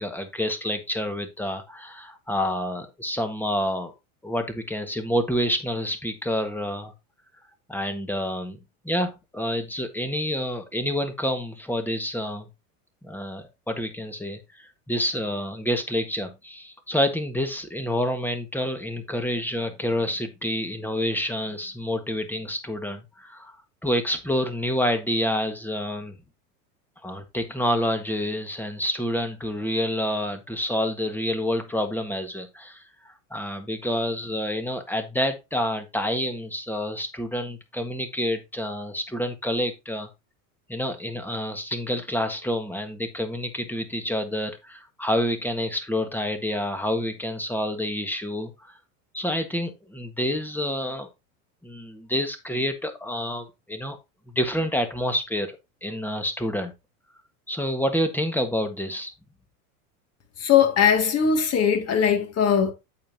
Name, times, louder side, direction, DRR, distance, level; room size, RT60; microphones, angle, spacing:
voice 1, 0.0-3.9 4.2-6.9 7.7-8.6 8.8-12.5 13.0-23.5 23.8-26.2 27.0-40.1 40.7-48.5 49.1-51.1 51.6-54.0 54.3-56.7 57.5-59.1, equal, 5° left, 1.5 m, -28 dB
voice 2, 60.4-62.7, left 7 dB, 35° left, 2.2 m, -20 dB
8.7 x 7.0 x 2.8 m
hypercardioid pair, 105°, 44 cm